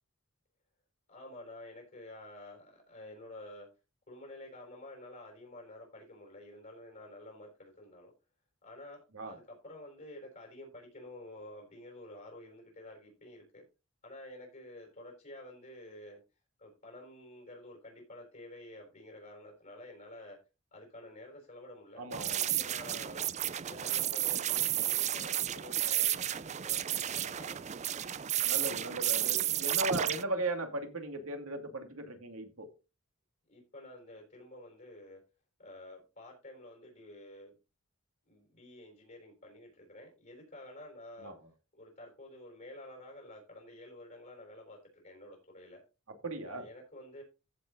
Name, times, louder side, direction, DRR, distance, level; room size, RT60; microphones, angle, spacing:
voice 1, 1.1-3.7 4.1-8.1 8.6-13.6 14.0-16.2 16.6-20.4 20.7-23.2 23.6-27.9 33.5-35.2 35.6-37.5 38.2-41.3 41.7-45.8 46.4-47.2, left 1 dB, 40° left, 4.7 m, -50 dB
voice 2, 22.0-22.5 28.5-32.7 41.2-41.3 46.2-46.7, right 2 dB, 80° right, 2.7 m, -37 dB
sound 1, 22.1-30.2, right 11 dB, 30° right, 0.4 m, -32 dB
15.0 x 5.5 x 4.0 m
head